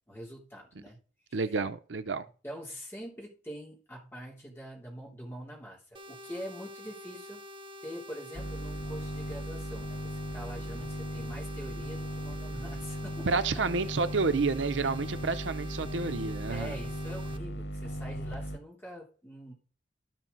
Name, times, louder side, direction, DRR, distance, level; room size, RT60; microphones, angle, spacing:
voice 1, 0.1-1.0 1.3-1.4 2.4-7.4 7.8-13.6 16.5-19.5, equal, 15° left, 3.3 m, -44 dB
voice 2, 1.3-2.2 13.3-16.8, right 4 dB, 85° right, 0.6 m, -30 dB
sound 1, 5.9-17.4, left 1 dB, 30° right, 0.7 m, -47 dB
sound 2, 8.3-18.6, equal, 80° left, 1.5 m, -37 dB
12.5 x 6.0 x 4.0 m
head